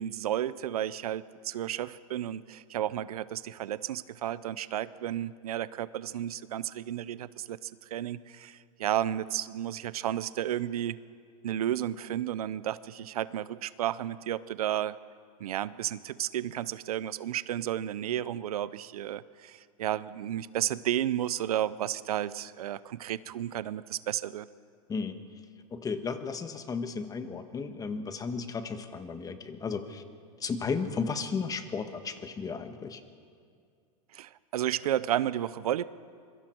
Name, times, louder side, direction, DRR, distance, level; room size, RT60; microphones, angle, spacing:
voice 1, 0.0-11.0 11.4-15.0 15.4-24.5 34.1-35.8, right 11 dB, 85° right, 17 dB, 0.7 m, -32 dB
voice 2, 25.7-30.0 30.4-33.0, left 5 dB, 20° left, 8 dB, 1.4 m, -34 dB
25.5 x 23.0 x 4.6 m, 2.2 s
supercardioid pair, 125°, 19 cm